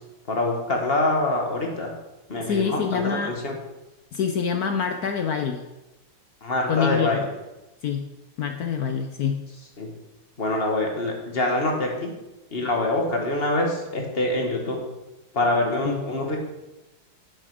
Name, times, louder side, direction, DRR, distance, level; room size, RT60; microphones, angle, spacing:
voice 1, 0.3-1.9 2.3-3.6 6.4-7.2 9.8-9.9 10.4-12.1 12.5-14.8 15.3-16.4, left 2 dB, 30° left, 1 dB, 1.8 m, -25 dB
voice 2, 2.4-3.4 4.1-5.6 6.7-7.3 7.8-8.0 8.4-9.4 15.8-16.0, left 7 dB, 70° left, 6 dB, 0.9 m, -26 dB
9.4 x 8.9 x 5.0 m, 1.0 s
omnidirectional pair, 2.3 m